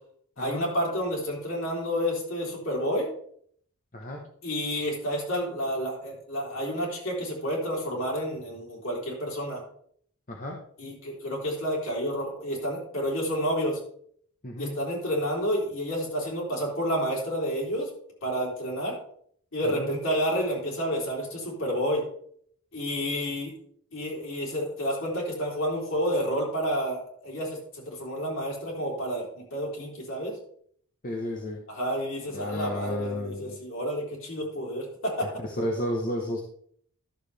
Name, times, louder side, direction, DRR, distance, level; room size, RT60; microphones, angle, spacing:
voice 1, 0.4-3.1 4.4-9.6 10.8-13.8 14.6-17.9 18.2-19.0 19.5-22.0 22.7-23.5 23.9-30.3 31.7-35.3, equal, 60° left, -2 dB, 3.4 m, -30 dB
voice 2, 3.9-4.2 10.3-10.6 14.4-14.8 19.8-19.9 31.0-31.6 32.3-33.6 35.4-36.4, left 1 dB, 40° left, 1 dB, 0.9 m, -32 dB
11.5 x 7.1 x 3.4 m, 0.63 s
head